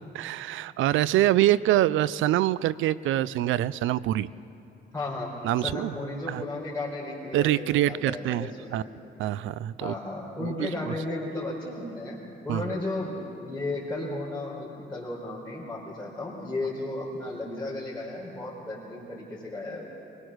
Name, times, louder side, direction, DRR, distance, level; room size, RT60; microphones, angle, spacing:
voice 1, 0.1-4.3 5.4-5.9 6.3-6.4 7.3-8.8 9.2-9.9 10.4-10.9 12.5-12.6, right 14 dB, 85° right, 19 dB, 0.5 m, -25 dB
voice 2, 4.9-5.3 5.6-8.9 9.8-19.9, left 2 dB, 10° left, -8 dB, 4.5 m, -34 dB
23.5 x 19.5 x 6.4 m, 2.8 s
cardioid pair, 90°, 20 cm